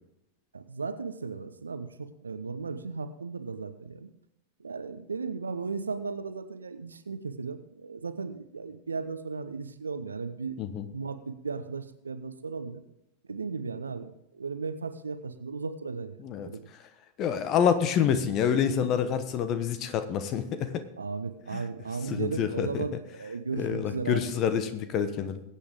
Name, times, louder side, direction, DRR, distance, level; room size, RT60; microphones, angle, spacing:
voice 1, 0.5-4.1 4.6-10.6 10.9-12.8 13.3-16.2 16.4-16.7 21.0-24.3, right 4 dB, 75° right, 10 dB, 0.9 m, -36 dB
voice 2, 17.2-20.8 21.5-21.6 22.1-22.8 23.6-25.4, left 8 dB, 35° left, 11 dB, 1.2 m, -27 dB
21.5 x 8.4 x 3.7 m, 0.82 s
figure-of-eight pair, 90°, 0 cm